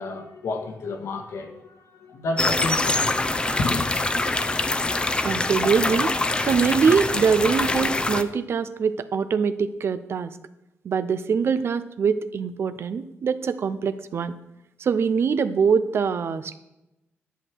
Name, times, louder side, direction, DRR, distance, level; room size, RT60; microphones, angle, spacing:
voice 1, 0.0-3.1 3.6-3.9, left 3 dB, 85° left, 1.8 m, -30 dB
sound 1, 2.4-8.2, left 2 dB, 20° left, 0.7 m, -24 dB
voice 2, 5.2-6.1 6.5-10.4 10.8-14.4 14.8-16.6, right 6 dB, 60° right, 0.7 m, -23 dB
11.0 x 10.5 x 4.6 m
wide cardioid pair, 120°, 5 cm